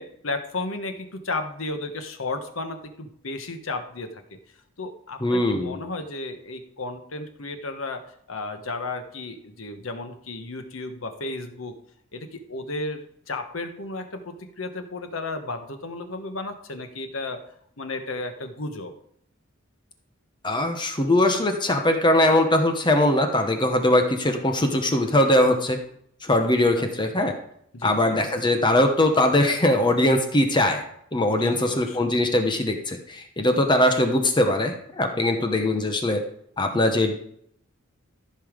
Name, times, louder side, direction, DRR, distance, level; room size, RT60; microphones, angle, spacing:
voice 1, 0.0-4.2 4.8-8.0 8.3-11.7 12.1-17.4 17.8-18.9 26.7-26.9 27.7-28.2 31.4-32.1 33.6-33.7, left 2 dB, 90° left, 7 dB, 1.2 m, -33 dB
voice 2, 5.2-5.8 20.4-25.8 26.2-27.4 27.8-30.8 31.1-36.2 36.6-37.1, left 1 dB, 25° left, 5 dB, 1.0 m, -21 dB
14.5 x 5.6 x 5.1 m, 0.69 s
head